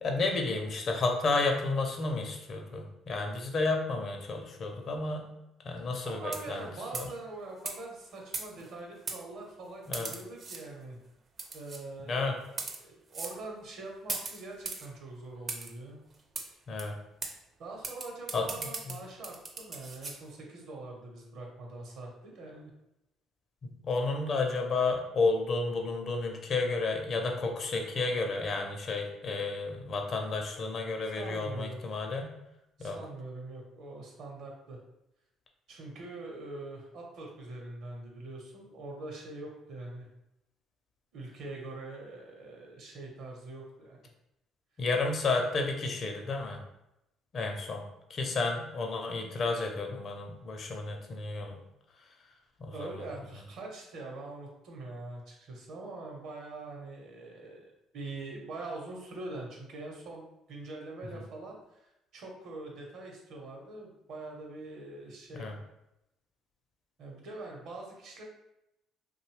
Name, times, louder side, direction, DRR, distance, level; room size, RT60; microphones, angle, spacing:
voice 1, 0.0-5.2 5.6-6.6 6.9-7.1 9.9-10.1 12.1-12.3 16.7-16.9 18.3-18.5 23.6-32.3 32.8-33.0 44.8-46.6 47.3-47.8 48.1-51.6 52.6-52.9 65.3-65.5, left 3 dB, 55° left, 3 dB, 0.6 m, -31 dB
voice 2, 6.1-11.0 11.5-16.0 17.6-22.7 31.0-31.8 32.8-34.8 35.7-40.1 41.1-44.1 52.7-65.5 67.0-68.2, right 2 dB, 70° right, 0 dB, 0.8 m, -43 dB
sound 1, 6.2-6.6 6.9-7.2 7.6-7.8 8.3-8.7 9.1-9.2 9.9-10.6 11.4-11.8 12.4-12.8 13.1-13.4 14.1-14.9 15.5-15.7 16.3-16.5 16.8-16.9 17.2-17.3 17.8-20.2, right 4 dB, 45° right, 0.4 m, -38 dB
2.6 x 2.2 x 3.1 m, 0.87 s
supercardioid pair, 65°, 0 cm